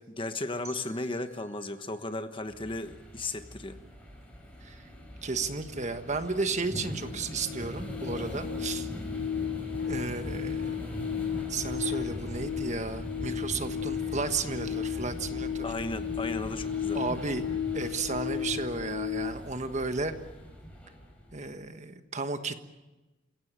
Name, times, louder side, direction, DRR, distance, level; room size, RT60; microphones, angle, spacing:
voice 1, 0.2-3.8 15.6-17.0, left 2 dB, 25° left, 8 dB, 1.3 m, -35 dB
sound 1, 0.6-3.6, right 4 dB, 15° right, 5.5 m, -55 dB
sound 2, 2.5-21.5, equal, 5° left, 4.8 m, -41 dB
voice 2, 5.2-8.9 9.9-10.7 11.5-15.7 16.9-17.5 17.7-20.1 21.3-22.6, right 3 dB, 35° right, 8 dB, 1.4 m, -33 dB
sound 3, 5.7-5.8 6.1-19.3, left 9 dB, 80° left, 1.3 m, -35 dB
28.5 x 16.5 x 9.0 m, 1.1 s
head